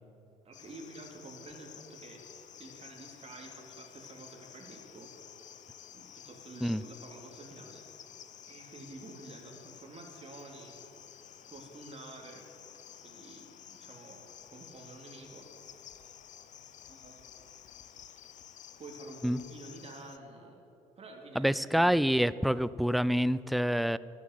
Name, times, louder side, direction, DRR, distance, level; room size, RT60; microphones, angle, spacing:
voice 1, 0.4-2.2 2.6-5.1 5.9-8.1 8.4-10.8 11.0-11.1 11.4-12.5 13.0-15.8 16.5-16.6 16.9-17.4 18.8-20.6 21.0-22.0, right 2 dB, 35° right, 1 dB, 2.6 m, -49 dB
Cricket, 0.5-20.2, left 9 dB, 50° left, 0.8 m, -52 dB
voice 2, 21.4-24.0, equal, ahead, 18 dB, 0.4 m, -27 dB
12.0 x 9.7 x 9.3 m, 2.9 s
hypercardioid pair, 55°, 17 cm